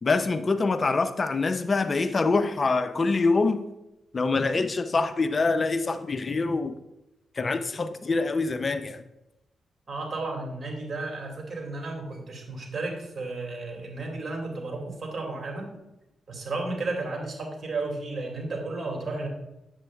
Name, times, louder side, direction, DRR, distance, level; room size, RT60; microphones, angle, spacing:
voice 1, 0.0-3.7 4.1-6.7 7.4-9.0, left 3 dB, 40° left, 0.4 m, -25 dB
voice 2, 9.9-15.7 16.3-19.3, right 3 dB, 50° right, 2.1 m, -33 dB
7.6 x 7.5 x 2.3 m
cardioid pair, 65°, 0 cm